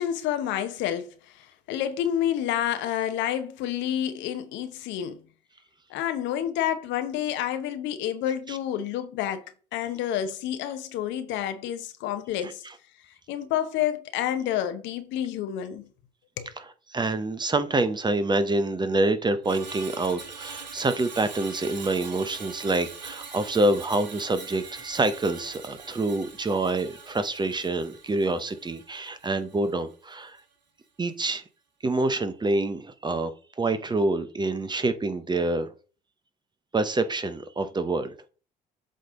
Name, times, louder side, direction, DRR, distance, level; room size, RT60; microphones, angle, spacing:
voice 1, 0.0-5.2 5.9-9.5 9.7-12.6 13.1-15.9 16.4-16.5, left 11 dB, 60° left, 0.9 m, -29 dB
voice 2, 16.9-30.4 31.0-31.4 31.8-33.3 33.6-35.7 36.7-38.1, right 2 dB, 20° right, 0.9 m, -26 dB
Screech, 19.4-29.8 30.1-30.4, right 5 dB, 90° right, 0.9 m, -43 dB
7.7 x 3.4 x 3.8 m
hypercardioid pair, 55°, 21 cm